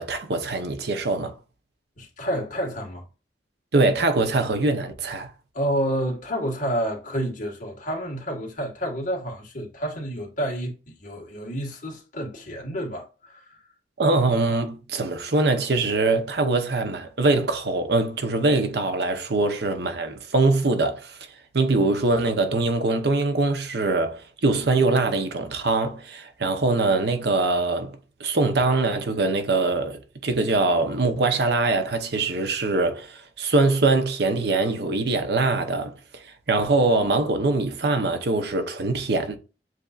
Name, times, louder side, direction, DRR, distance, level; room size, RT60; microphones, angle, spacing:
voice 1, 0.0-1.3 3.7-5.3 14.0-21.2 21.5-39.4, right 3 dB, 65° right, 0.8 m, -23 dB
voice 2, 2.0-3.0 5.5-13.6, equal, 45° left, 1.7 m, -29 dB
7.4 x 2.7 x 2.4 m
head